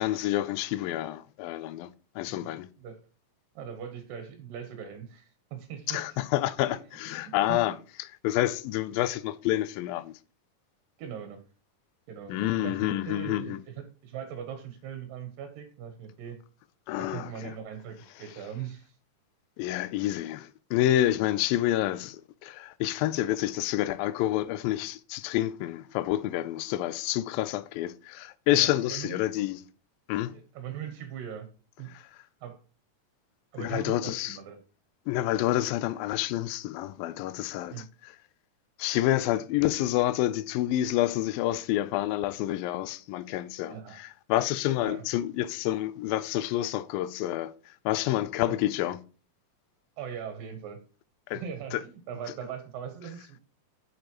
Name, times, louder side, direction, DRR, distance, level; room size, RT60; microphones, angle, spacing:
voice 1, 0.0-2.7 5.9-10.2 12.3-13.6 16.9-17.5 19.6-29.6 30.1-30.3 31.9-32.0 33.6-34.4 35.1-38.2 38.8-49.0 51.3-51.4 51.7-51.8, left 14 dB, 90° left, 2.4 m, -28 dB
voice 2, 3.6-6.0 6.7-6.8 7.2-7.7 9.0-9.1 11.0-11.4 12.1-16.4 17.0-19.0 28.5-29.2 30.3-31.5 31.8-31.9 32.4-32.6 33.5-34.6 37.7-37.9 43.7-44.0 44.8-45.0 48.4-48.5 50.0-50.8 51.3-53.4, right 8 dB, 80° right, 2.8 m, -40 dB
9.2 x 6.7 x 3.0 m
omnidirectional pair, 4.0 m